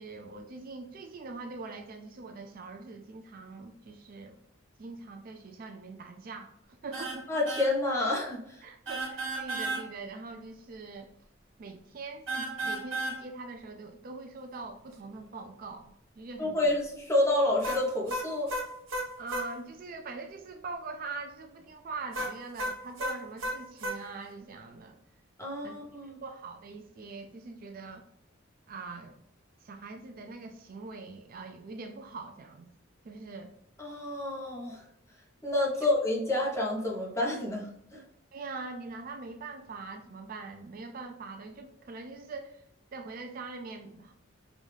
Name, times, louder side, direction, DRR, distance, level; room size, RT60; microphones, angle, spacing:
voice 1, 0.0-4.4 4.8-6.5 6.8-7.3 8.6-11.1 11.6-16.6 19.2-25.0 25.6-28.0 28.7-29.2 29.6-32.7 33.0-33.5 38.3-42.6 42.9-44.1, right 3 dB, 45° right, 5 dB, 0.4 m, -43 dB
sound 1, 6.9-7.2 7.5-7.7 8.9-9.8 12.3-13.2 17.6-19.5 22.1-24.0, right 1 dB, 75° right, 1.2 m, -33 dB
voice 2, 7.3-8.6 16.4-18.5 25.4-26.2 33.8-34.8 35.4-37.7 37.9-38.0, left 1 dB, 15° left, -3 dB, 1.0 m, -29 dB
5.1 x 2.6 x 3.2 m, 0.74 s
head